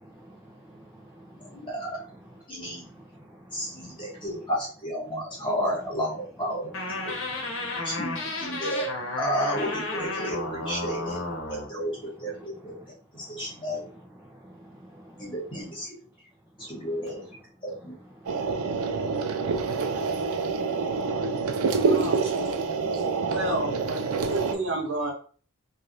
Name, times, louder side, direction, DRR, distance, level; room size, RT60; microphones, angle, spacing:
voice 1, 0.0-1.6 2.6-3.1 3.5-4.2 7.6-7.8 13.2-13.3 14.2-15.3 18.2-18.4 19.3-22.1 23.0-23.3, right 1 dB, 10° right, -3 dB, 0.4 m, -50 dB
voice 2, 1.4-2.0 2.5-2.9 3.5-7.0 7.8-8.9 9.2-12.7 13.1-13.8 15.2-15.9 16.6-17.2 17.6-17.9, equal, 20° left, -5 dB, 1.2 m, -32 dB
sound 1, 6.7-11.7, left 2 dB, 60° left, 0.9 m, -32 dB
sound 2, 18.3-24.6, right 4 dB, 80° right, 0.4 m, -27 dB
voice 3, 21.8-22.7 23.0-25.1, right 2 dB, 50° right, 0 dB, 0.8 m, -31 dB
3.3 x 2.4 x 2.6 m, 0.42 s
head